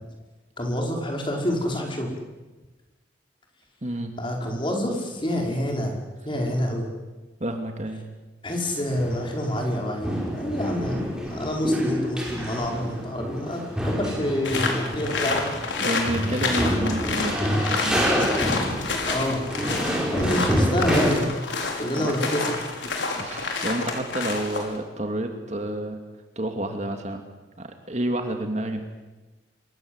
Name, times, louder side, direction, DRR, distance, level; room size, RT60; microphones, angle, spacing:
voice 1, 0.6-2.2 4.2-6.0 6.3-6.9 8.4-15.5 16.3-16.5 18.2-18.3 19.1-19.4 20.1-21.4 21.8-22.6, equal, 25° left, 1 dB, 5.4 m, -27 dB
voice 2, 3.8-4.1 7.4-8.0 15.8-17.4 17.7-18.1 21.7-22.1 23.2-26.0 26.4-27.2 27.6-28.8, right 1 dB, 35° right, 5 dB, 2.5 m, -29 dB
sound 1, 8.5-9.7 10.0-21.1, equal, 5° right, 5.7 m, -27 dB
sound 2, 14.4-24.8, left 3 dB, 80° left, 5.2 m, -29 dB
27.0 x 23.0 x 8.2 m, 1.2 s
head